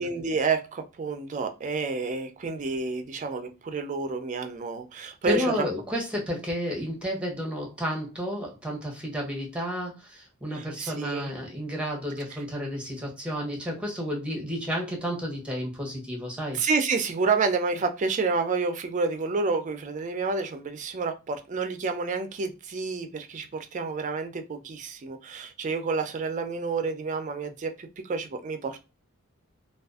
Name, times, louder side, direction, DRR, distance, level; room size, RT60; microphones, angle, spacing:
voice 1, 0.0-5.6 10.5-11.3 16.5-28.8, right 4 dB, 35° right, 0.4 m, -29 dB
voice 2, 5.0-16.6, equal, 5° right, 0.7 m, -31 dB
2.4 x 2.3 x 2.3 m
head